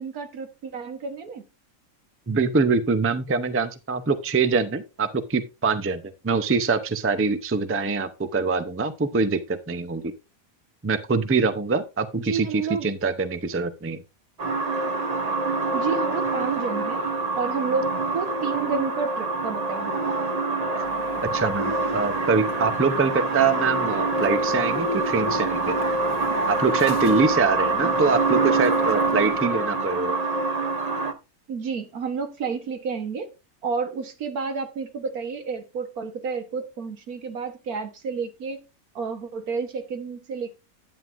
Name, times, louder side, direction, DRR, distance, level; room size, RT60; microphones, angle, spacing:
voice 1, 0.0-1.5 12.2-12.9 15.7-17.0 17.4-20.0 31.5-33.3 33.6-38.6 39.0-40.5, right 5 dB, 85° right, 1.8 m, -30 dB
voice 2, 2.3-10.1 10.8-14.0 21.2-25.8 26.5-30.2, right 4 dB, 15° right, 0.4 m, -24 dB
sound 1, 14.4-31.1, right 3 dB, 35° right, 0.8 m, -25 dB
sound 2, 20.8-29.5, left 6 dB, 85° left, 1.7 m, -42 dB
10.5 x 9.2 x 2.6 m
omnidirectional pair, 1.5 m